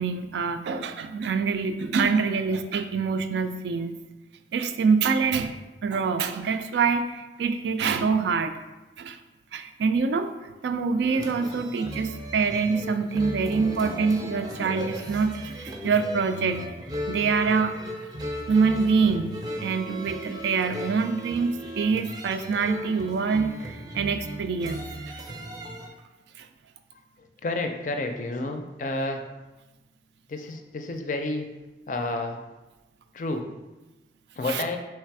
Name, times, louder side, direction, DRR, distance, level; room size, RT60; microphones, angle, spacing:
voice 1, 0.0-4.0 4.5-5.5 5.8-8.5 9.0-9.2 9.5-10.3 10.6-16.6 17.1-17.7 18.5-25.2 26.4-26.5 34.4-34.6, right 5 dB, 80° right, 8 dB, 0.3 m, -25 dB
sound 1, 11.0-25.9, equal, 20° right, 0.5 m, -36 dB
voice 2, 27.4-29.2 30.3-31.5 31.9-32.4 33.1-33.5 34.4-34.8, left 2 dB, 45° left, 5 dB, 0.4 m, -30 dB
3.3 x 3.2 x 4.6 m, 1.1 s
head